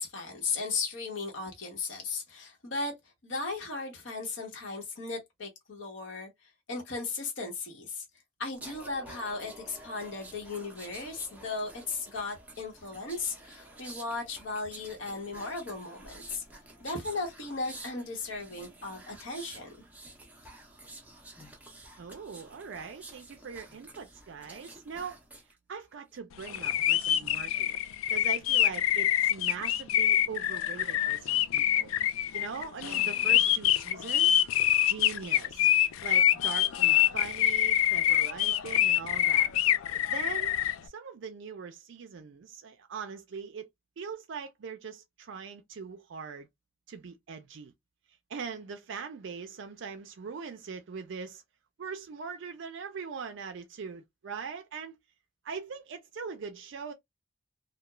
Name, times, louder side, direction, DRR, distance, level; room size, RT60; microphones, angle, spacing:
voice 1, 0.0-2.9 3.2-6.3 6.7-8.0 8.4-16.4 16.8-19.7, left 3 dB, 65° left, 1.0 m, -36 dB
sound 1, 8.5-25.5 25.9-26.2, right 2 dB, 10° right, 0.5 m, -50 dB
voice 2, 22.0-25.2 25.7-27.8 28.1-31.9 32.3-34.4 34.9-39.5 40.1-40.6 40.8-43.7 44.0-46.5 46.9-47.7 48.3-51.4 51.8-55.0 55.4-56.9, right 5 dB, 60° right, 0.4 m, -41 dB
sound 2, 26.5-40.7, left 11 dB, 80° left, 0.3 m, -25 dB
2.3 x 2.2 x 2.9 m
head